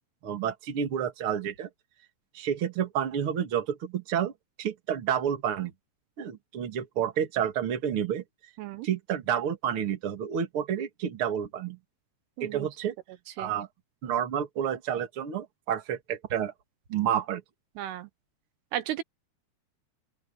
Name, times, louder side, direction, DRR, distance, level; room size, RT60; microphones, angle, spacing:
voice 1, 0.2-1.7 2.3-4.3 4.6-5.7 6.2-8.2 8.8-11.8 12.4-12.9 13.4-13.7 14.0-16.5 16.9-17.4, right 9 dB, 40° right, 2.3 m, -29 dB
voice 2, 12.4-12.7 13.4-13.5 17.8-18.1 18.7-19.0, right 12 dB, 75° right, 2.9 m, -34 dB
open air
omnidirectional pair, 4.9 m